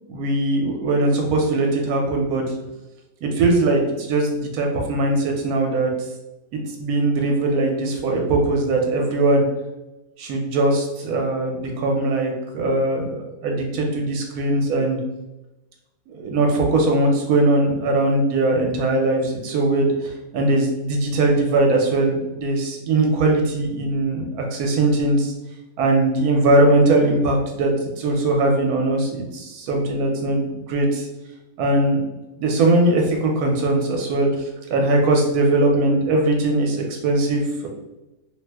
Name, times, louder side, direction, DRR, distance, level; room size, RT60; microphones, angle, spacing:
voice 1, 0.1-2.4 3.2-5.9 6.8-9.4 10.2-15.0 16.1-19.9 20.3-25.3 25.8-27.7 28.0-31.0 31.6-32.0 32.4-34.3 34.7-37.7, right 2 dB, 70° right, 1 dB, 1.1 m, -20 dB
2.8 x 2.1 x 3.3 m, 1.0 s
omnidirectional pair, 1.7 m